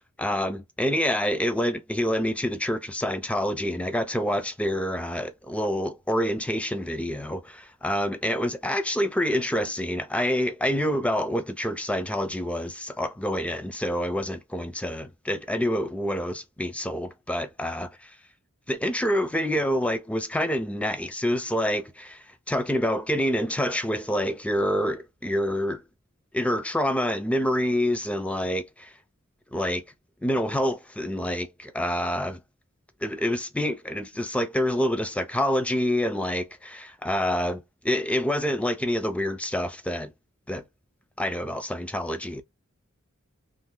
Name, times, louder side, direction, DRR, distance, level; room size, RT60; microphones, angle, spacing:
voice 1, 0.2-17.9 18.7-25.8 26.3-28.9 29.5-29.8 30.2-32.4 33.0-40.1 40.5-40.6 41.2-42.4, equal, 5° left, 0.4 m, -27 dB
2.7 x 2.6 x 3.3 m
head